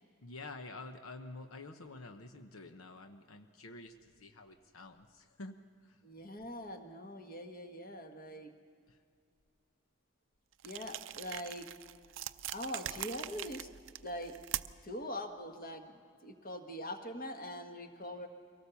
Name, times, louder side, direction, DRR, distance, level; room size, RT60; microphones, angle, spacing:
voice 1, 0.2-6.0 8.9-9.0, left 2 dB, 90° left, 6 dB, 1.0 m, -49 dB
voice 2, 6.0-8.5 10.6-11.7 12.5-13.7 14.0-14.3 14.8-15.9 16.2-18.3, left 1 dB, 45° left, 4 dB, 1.6 m, -43 dB
sound 1, 10.6-14.9, right 12 dB, 65° right, 0.5 m, -42 dB
23.5 x 18.0 x 7.1 m, 2.3 s
head